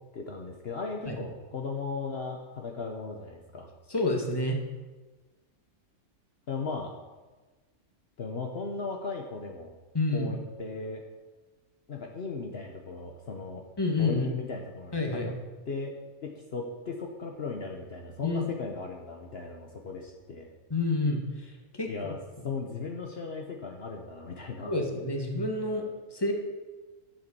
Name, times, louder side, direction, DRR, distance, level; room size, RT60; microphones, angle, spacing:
voice 1, 0.1-3.7 6.5-6.9 8.2-9.7 10.1-11.0 11.9-13.6 14.0-15.3 15.7-15.9 16.2-20.5 21.9-22.2 22.4-24.8, left 4 dB, 55° left, 2 dB, 1.3 m, -37 dB
voice 2, 3.9-4.6 9.9-10.3 13.8-14.3 14.9-15.3 18.2-18.4 20.7-21.2 21.7-21.9 24.7-25.8 26.1-26.3, left 2 dB, 20° left, 2 dB, 1.7 m, -28 dB
11.5 x 7.5 x 6.9 m, 1.2 s
omnidirectional pair, 1.3 m